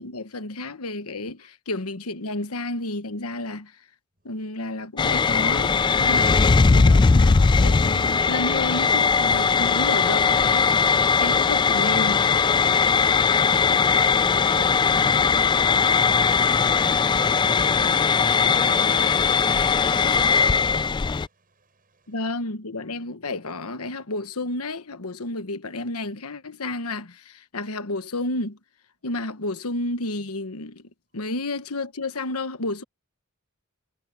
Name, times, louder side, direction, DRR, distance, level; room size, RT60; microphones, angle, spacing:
voice 1, 0.0-3.7 4.2-10.7 11.2-12.2 18.7-18.9 22.1-28.6 29.0-32.8, left 2 dB, 85° left, 1.3 m, -31 dB
sound 1, 5.0-21.3, left 5 dB, 20° left, 0.3 m, -19 dB
voice 2, 13.0-22.2, right 3 dB, 40° right, 7.5 m, -46 dB
head